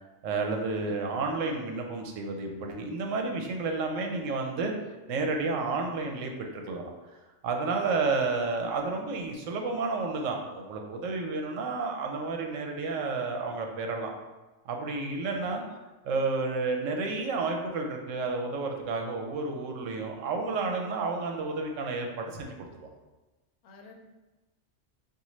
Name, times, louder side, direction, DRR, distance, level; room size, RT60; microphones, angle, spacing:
voice 1, 0.2-4.7 5.1-6.9 7.4-14.1 14.6-15.6 16.0-22.5 22.8-22.9, right 3 dB, 80° right, 2 dB, 1.0 m, -31 dB
voice 2, 15.4-15.9 23.6-23.9, left 3 dB, 85° left, 2 dB, 1.0 m, -51 dB
5.1 x 2.5 x 3.0 m, 1.1 s
omnidirectional pair, 1.3 m